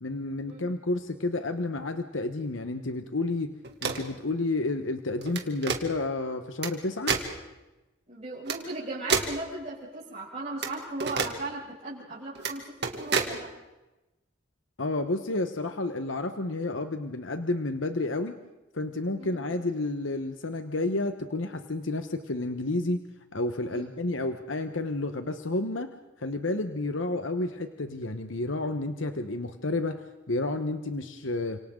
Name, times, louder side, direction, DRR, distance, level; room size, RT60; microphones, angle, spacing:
voice 1, 0.0-3.5 3.8-7.1 14.8-18.4 18.7-23.0 23.3-25.9 26.2-31.6, left 2 dB, 85° left, 7 dB, 1.2 m, -30 dB
sound 1, 3.6-4.1 5.2-5.8 6.6-6.7 7.1-7.3 8.5-8.6 9.1-9.4 10.6-10.7 11.0-11.3 12.4-12.5 12.8-13.3, right 5 dB, 60° right, 2.5 m, -28 dB
voice 2, 8.1-13.5 19.2-19.4 23.7-23.9 26.9-27.0, right 2 dB, 35° right, -9 dB, 6.6 m, -37 dB
30.0 x 27.0 x 3.9 m, 1.0 s
head